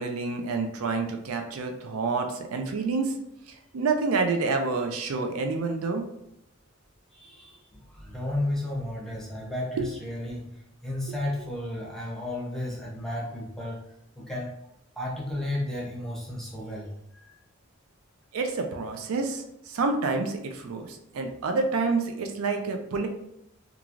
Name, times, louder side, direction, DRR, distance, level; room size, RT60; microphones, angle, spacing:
voice 1, 0.0-3.1 3.5-6.0 9.8-9.9 18.3-23.1, right 4 dB, 90° right, 5 dB, 0.4 m, -28 dB
voice 2, 7.1-13.8 14.2-14.5 15.0-16.9 17.1-17.3, left 1 dB, ahead, -4 dB, 0.7 m, -33 dB
3.0 x 2.4 x 2.4 m, 0.80 s
head